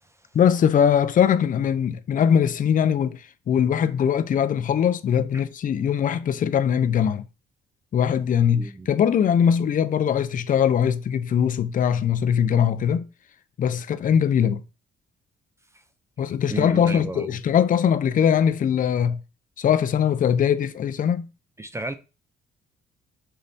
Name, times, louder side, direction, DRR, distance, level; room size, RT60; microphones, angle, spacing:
voice 1, 0.3-7.2 7.9-13.1 13.6-14.6 16.2-19.2 19.6-21.3, left 8 dB, 45° left, 0.4 m, -21 dB
voice 2, 8.5-8.9 16.5-17.3 21.6-22.0, right 2 dB, 15° right, 0.4 m, -32 dB
5.6 x 3.1 x 2.7 m
cardioid pair, 90°, 20 cm